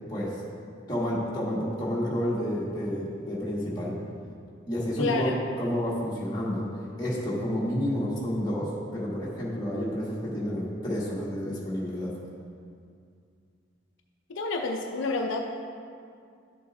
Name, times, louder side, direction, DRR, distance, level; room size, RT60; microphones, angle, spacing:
voice 1, 0.9-4.0 4.7-6.7 7.0-12.1, equal, 20° left, -7 dB, 1.5 m, -30 dB
voice 2, 5.0-5.4 14.3-15.4, left 3 dB, 75° left, 2 dB, 0.5 m, -29 dB
11.0 x 6.8 x 2.6 m, 2.3 s
head